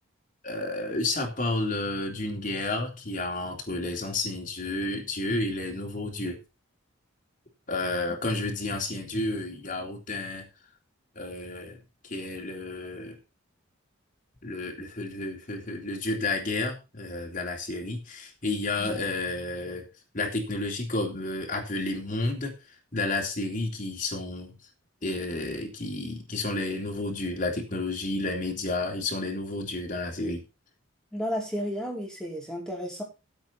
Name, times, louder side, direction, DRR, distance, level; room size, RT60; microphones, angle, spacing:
voice 1, 0.4-6.4 7.7-10.4 11.2-11.8 12.0-13.2 14.4-19.9 20.1-22.5 22.9-24.5 25.0-30.4, left 2 dB, 35° left, 2 dB, 3.6 m, -31 dB
voice 2, 31.1-33.0, equal, 5° left, -2 dB, 4.8 m, -32 dB
14.5 x 8.2 x 4.3 m, 0.28 s
head